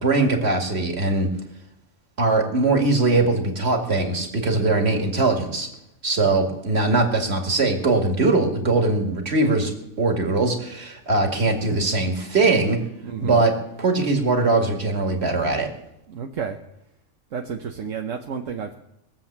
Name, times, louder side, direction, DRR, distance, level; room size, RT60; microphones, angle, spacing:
voice 1, 0.0-1.3 2.2-5.7 6.0-9.7 10.0-12.8 13.2-13.5 13.8-15.7, right 3 dB, 50° right, 4 dB, 2.4 m, -21 dB
voice 2, 11.6-11.9 13.0-13.4 16.1-16.6 17.3-18.7, right 6 dB, 75° right, 4 dB, 1.3 m, -31 dB
21.0 x 7.6 x 7.3 m, 0.84 s
omnidirectional pair, 1.4 m